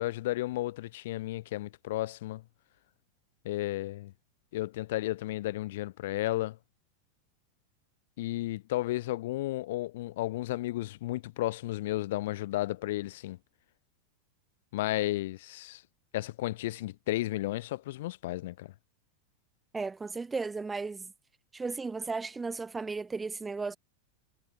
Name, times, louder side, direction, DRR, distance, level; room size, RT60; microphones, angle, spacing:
voice 1, 0.0-2.4 3.4-4.1 4.5-6.6 8.2-13.4 14.7-15.8 16.1-18.7, left 16 dB, 55° left, 4.4 m, -33 dB
voice 2, 19.7-21.1 21.5-23.8, right 4 dB, 10° right, 1.3 m, -35 dB
figure-of-eight pair, 90°, 0 cm